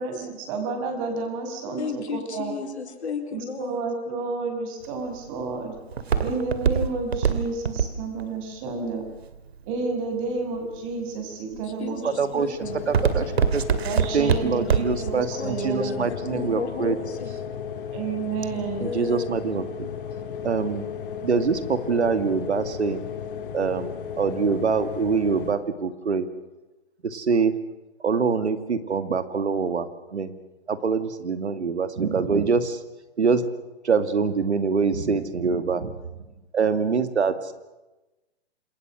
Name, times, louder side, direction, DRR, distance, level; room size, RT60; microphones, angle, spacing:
voice 1, 0.0-2.5 3.3-5.7 6.2-9.0 9.6-12.8 13.8-16.0 17.9-18.9, right 4 dB, 30° right, 5 dB, 6.0 m, -31 dB
voice 2, 1.8-3.9 11.5-12.6 13.0-13.2 14.6-17.4 18.5-19.4, left 5 dB, 80° left, 5 dB, 4.3 m, -34 dB
Walk footsteps, 4.8-10.0 10.6-11.0 11.5-11.9 12.2-15.1 15.4-15.5, right 7 dB, 70° right, 2.4 m, -23 dB
voice 3, 12.0-12.6 12.9-13.6 14.1-17.0 18.8-19.9 20.4-20.8 21.2-23.1 23.5-26.2 27.0-27.5 28.0-30.3 30.7-32.8 33.2-33.4 33.8-36.0 36.5-37.3, right 5 dB, 85° right, 10 dB, 2.4 m, -24 dB
sound 1, 12.6-25.5, left 7 dB, 50° left, 3.0 m, -35 dB
27.5 x 21.5 x 6.5 m, 1.0 s
hypercardioid pair, 155°, 33 cm